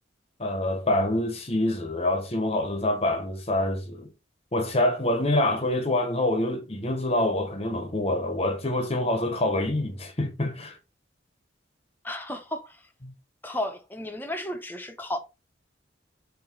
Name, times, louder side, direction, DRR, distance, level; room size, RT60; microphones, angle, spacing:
voice 1, 0.4-4.1 4.5-10.8 13.0-13.1, left 1 dB, 35° left, 1.2 m, -26 dB
voice 2, 12.0-12.8 13.4-15.2, left 1 dB, 10° left, 1.1 m, -33 dB
7.5 x 3.0 x 5.7 m
head